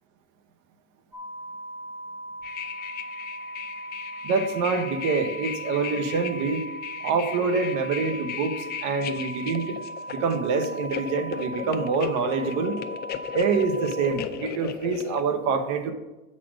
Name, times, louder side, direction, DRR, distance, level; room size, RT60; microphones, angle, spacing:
sound 1, 1.1-14.1, right 1 dB, 5° right, 0.8 m, -39 dB
sound 2, 2.4-15.2, left 10 dB, 30° left, 0.4 m, -36 dB
voice 1, 4.2-6.7 7.0-9.8 10.1-12.8 13.3-15.9, right 4 dB, 60° right, 7 dB, 1.0 m, -26 dB
7.4 x 4.2 x 6.2 m, 1.0 s
supercardioid pair, 130°, 33 cm